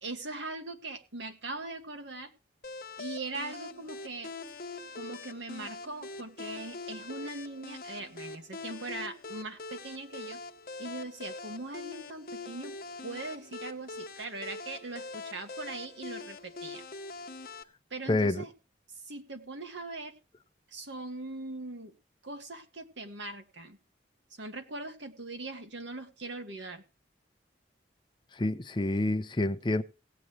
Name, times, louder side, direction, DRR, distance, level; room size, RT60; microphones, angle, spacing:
voice 1, 0.0-2.3 3.0-4.3 4.9-10.4 10.8-12.8 13.0-16.8 17.9-18.5 19.0-20.2 20.7-21.9 22.2-23.8 24.4-26.8, right 2 dB, 85° right, 1.8 m, -40 dB
sound 1, 2.6-17.6, left 3 dB, 50° left, 0.9 m, -43 dB
voice 2, 18.1-18.4 28.4-29.8, left 2 dB, 25° left, 0.6 m, -28 dB
17.5 x 8.6 x 3.1 m
head